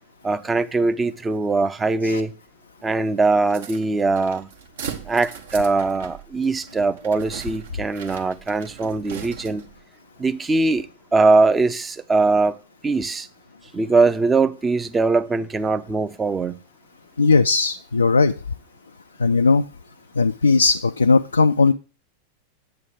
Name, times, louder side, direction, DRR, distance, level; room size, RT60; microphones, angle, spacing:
voice 1, 0.2-2.3 2.8-4.5 5.1-9.6 10.2-12.6 12.8-13.3 13.7-16.6, right 3 dB, 15° right, 0.6 m, -21 dB
sound 1, 3.5-9.8, right 7 dB, 60° right, 1.2 m, -39 dB
voice 2, 17.2-18.3 19.2-19.6 20.2-21.7, left 4 dB, 75° left, 0.3 m, -17 dB
9.0 x 8.2 x 3.5 m
figure-of-eight pair, 90°, 0 cm